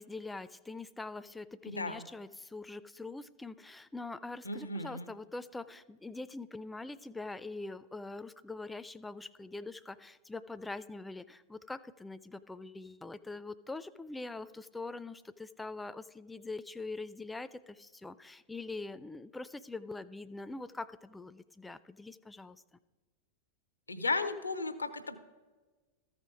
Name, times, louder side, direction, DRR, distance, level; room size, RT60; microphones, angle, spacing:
voice 1, 0.0-22.6, left 3 dB, 10° left, 15 dB, 0.4 m, -43 dB
voice 2, 1.7-2.0 4.4-5.1 23.9-25.2, left 3 dB, 80° left, 11 dB, 0.6 m, -35 dB
14.0 x 5.0 x 4.8 m, 1.3 s
figure-of-eight pair, 90°, 0 cm